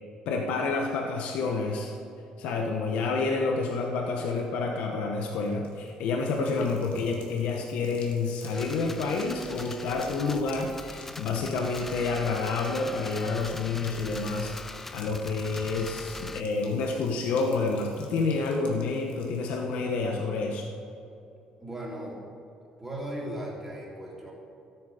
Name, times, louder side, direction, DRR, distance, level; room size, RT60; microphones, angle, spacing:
voice 1, 0.2-1.9 2.4-14.5 14.9-20.6, left 4 dB, 80° left, 1 dB, 1.4 m, -29 dB
sound 1, 5.5-19.7, left 5 dB, 60° left, 2.2 m, -53 dB
sound 2, 8.5-16.4, left 2 dB, 10° left, 0.4 m, -42 dB
voice 2, 21.6-22.2 22.8-24.3, right 1 dB, 10° right, -4 dB, 3.1 m, -37 dB
14.0 x 9.5 x 6.8 m, 2.8 s
cardioid pair, 170°, 2 cm